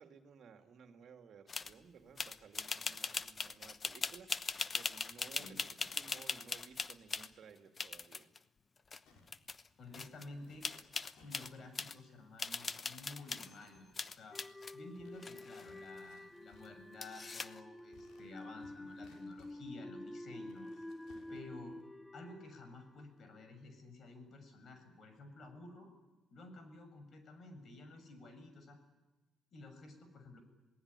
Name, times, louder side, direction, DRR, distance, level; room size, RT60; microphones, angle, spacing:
voice 1, 0.0-8.3 21.1-21.5, right 6 dB, 65° right, 6 dB, 2.6 m, -58 dB
sound 1, 1.5-1.7 2.2-7.3 7.8-8.4 8.9-9.0 9.3-9.7 9.9-10.3 10.6-12.0 12.4-13.6 14.0-14.7 15.2-16.0 17.0-17.6, left 4 dB, 35° left, 1.0 m, -40 dB
voice 2, 5.3-5.6 9.8-10.7 11.2-14.4 14.7-20.8 21.3-21.8 22.1-25.9 26.3-28.8 29.5-30.4, left 2 dB, 55° left, 8 dB, 6.9 m, -52 dB
sound 2, 9.1-21.8, left 3 dB, 85° left, 5.9 m, -66 dB
sound 3, 14.3-23.5, left 1 dB, 10° left, 0.9 m, -50 dB
27.5 x 18.5 x 9.8 m, 1.1 s
cardioid pair, 90°, 0 cm